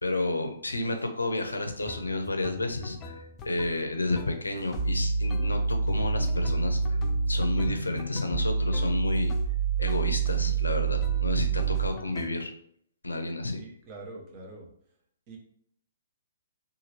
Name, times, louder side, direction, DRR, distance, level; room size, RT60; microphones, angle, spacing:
voice 1, 0.0-7.0 7.3-9.3 9.8-12.5 13.0-13.6, left 2 dB, 90° left, 6 dB, 0.5 m, -31 dB
sound 1, 1.4-1.5 1.9-4.9 5.3-5.6 5.9-9.5 9.9-10.6 11.0-12.3, left 4 dB, 25° left, 0.4 m, -44 dB
sound 2, 4.8-11.9, right 4 dB, 55° right, 1.4 m, -27 dB
voice 2, 13.5-14.7 15.3-15.4, right 2 dB, 35° right, 0 dB, 0.8 m, -44 dB
2.9 x 2.5 x 2.8 m, 0.65 s
hypercardioid pair, 130°, 0 cm